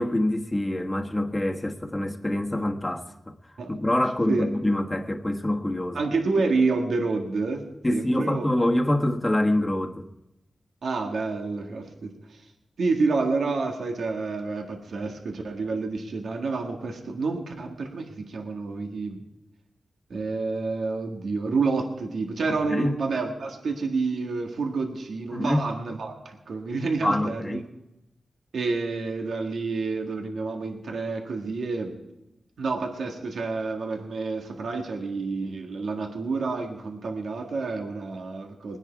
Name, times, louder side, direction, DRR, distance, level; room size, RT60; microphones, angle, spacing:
voice 1, 0.0-3.1 3.7-6.0 7.8-10.0 22.5-22.9 25.3-25.7 27.0-27.6, left 1 dB, 20° left, 1.3 m, -25 dB
voice 2, 5.9-7.6 7.9-8.5 10.8-12.4 12.8-19.2 20.1-27.6 28.5-32.0 32.6-38.8, right 3 dB, 85° right, 1.7 m, -29 dB
21.0 x 10.0 x 4.7 m
cardioid pair, 60°, 0 cm